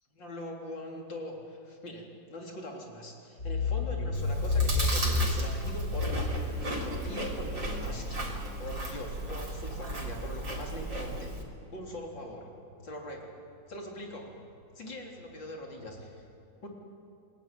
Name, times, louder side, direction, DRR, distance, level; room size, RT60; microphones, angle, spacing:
voice 1, 0.1-2.0 2.3-11.3 11.7-12.5 12.8-13.3 13.7-14.2 14.7-16.2 16.6-16.7, left 1 dB, 85° left, 0 dB, 4.3 m, -42 dB
sound 1, 3.4-10.6 11.0-12.3 12.8-12.9 13.2-13.3 13.7-13.8 14.0-14.1 14.4-14.6 14.9-16.0, left 3 dB, 55° left, 7.4 m, -32 dB
Chewing mastication, 4.1-11.4, right 1 dB, 85° right, 4.4 m, -35 dB
29.5 x 20.0 x 9.2 m, 2.5 s
omnidirectional pair, 2.0 m